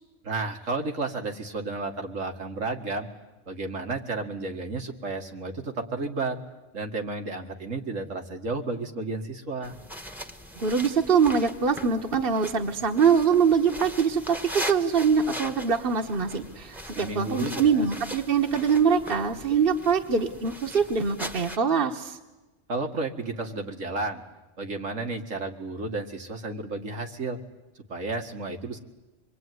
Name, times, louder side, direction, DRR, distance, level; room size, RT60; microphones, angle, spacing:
voice 1, 0.2-3.1 3.5-6.4 6.7-9.8 16.9-17.9 22.7-24.2 24.6-27.4 27.9-28.8, right 3 dB, 85° right, 3 dB, 2.3 m, -32 dB
sound 1, 9.6-21.6, equal, ahead, 1.3 m, -40 dB
voice 2, 10.6-22.2, right 6 dB, 50° right, 2 dB, 1.4 m, -23 dB
26.0 x 22.0 x 9.4 m, 1.1 s
omnidirectional pair, 1.3 m